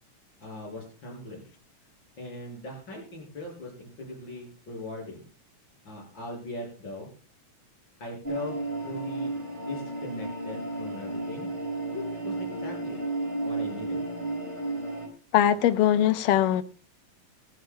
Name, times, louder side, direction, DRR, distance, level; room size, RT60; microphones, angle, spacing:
voice 1, 0.4-1.5 2.2-5.2 5.8-7.1 8.0-8.6 8.8-11.5 11.9-12.3 12.6-13.0 13.4-14.0, left 2 dB, 30° left, 6.6 m, -40 dB
sound 1, 8.2-15.1, right 2 dB, 10° left, 4.1 m, -33 dB
voice 2, 15.3-16.6, left 11 dB, 80° left, 2.4 m, -21 dB
24.5 x 9.6 x 2.2 m
omnidirectional pair, 3.9 m